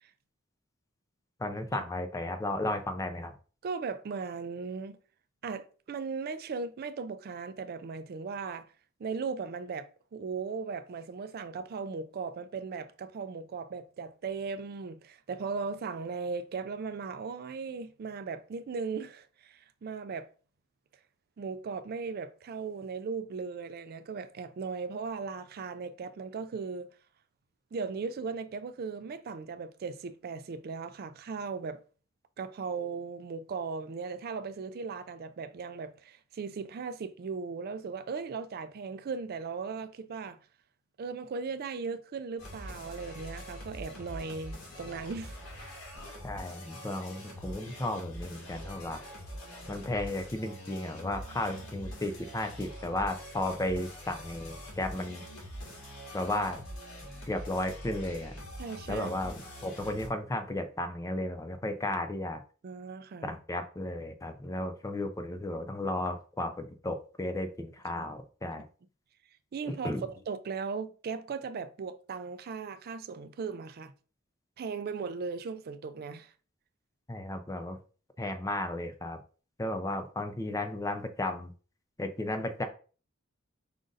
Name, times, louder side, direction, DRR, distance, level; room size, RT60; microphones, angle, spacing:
voice 1, 1.4-3.3 46.2-49.0 49.7-55.2 56.1-56.6 57.3-58.3 58.9-62.4 63.2-68.6 69.7-70.0 77.1-77.8 78.2-79.2 79.6-81.5 82.0-82.7, left 1 dB, 15° left, 0.5 m, -34 dB
voice 2, 3.6-5.0 5.4-8.7 9.0-20.3 21.4-26.9 27.7-31.8 32.4-40.4 41.0-45.4 58.6-59.1 62.6-63.4 68.0-68.1 69.5-69.9 70.3-73.9 74.6-76.3, right 5 dB, 50° right, 0.4 m, -37 dB
sound 1, 42.4-60.1, equal, 90° left, 1.8 m, -44 dB
5.1 x 2.5 x 3.8 m
head